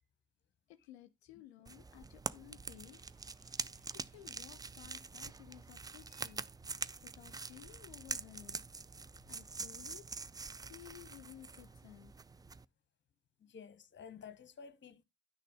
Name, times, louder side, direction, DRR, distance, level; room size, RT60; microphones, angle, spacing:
voice 1, 0.7-3.0 3.9-6.4 7.0-8.6 9.3-10.1 10.7-12.1, left 13 dB, 75° left, 0.5 m, -56 dB
sound 1, 1.7-12.7, right 4 dB, 10° right, 0.4 m, -45 dB
sound 2, 2.6-4.7 5.1-9.0, right 4 dB, 75° right, 3.9 m, -75 dB
voice 2, 13.4-15.0, left 6 dB, 35° left, 1.0 m, -52 dB
10.5 x 6.5 x 3.4 m
figure-of-eight pair, 40°, 32 cm